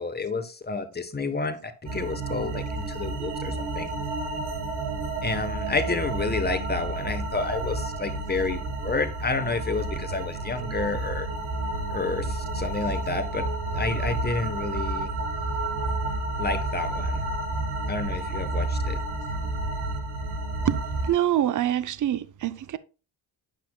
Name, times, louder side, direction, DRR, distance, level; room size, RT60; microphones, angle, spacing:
voice 1, 0.0-3.9 5.2-11.3 11.9-13.4 13.7-15.1 16.4-17.3 17.9-19.0, left 3 dB, 20° left, 1.1 m, -30 dB
sound 1, 1.9-21.1, right 2 dB, 85° right, 1.5 m, -30 dB
voice 2, 20.6-22.8, right 11 dB, 40° right, 0.6 m, -25 dB
9.3 x 5.9 x 2.2 m
supercardioid pair, 65°, 48 cm